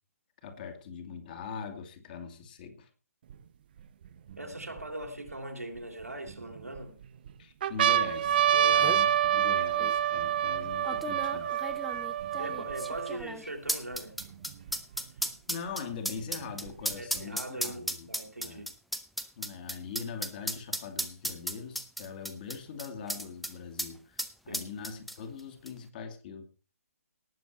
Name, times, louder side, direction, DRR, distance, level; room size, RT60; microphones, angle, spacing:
voice 1, 0.4-2.9 7.4-8.5 8.7-11.6 15.5-18.1 18.4-18.6 19.4-26.4, left 5 dB, 35° left, 2.5 m, -42 dB
sound 1, 3.3-3.4 4.1-5.3 6.0-6.8 7.3-7.4 7.6-13.2 14.0-14.1 14.2-15.2 16.2-17.2, right 10 dB, 40° right, 0.9 m, -27 dB
voice 2, 4.4-7.0 8.5-9.0 12.4-14.2 15.1-15.3 16.9-18.7 24.5-24.7, right 1 dB, 80° right, 3.1 m, -40 dB
sound 2, 8.3-8.4 8.6-9.0 9.8-9.9 10.8-23.5 23.8-23.9 24.2-25.4 25.7-25.8, equal, ahead, 0.8 m, -35 dB
18.5 x 7.3 x 4.5 m
figure-of-eight pair, 135°, 8 cm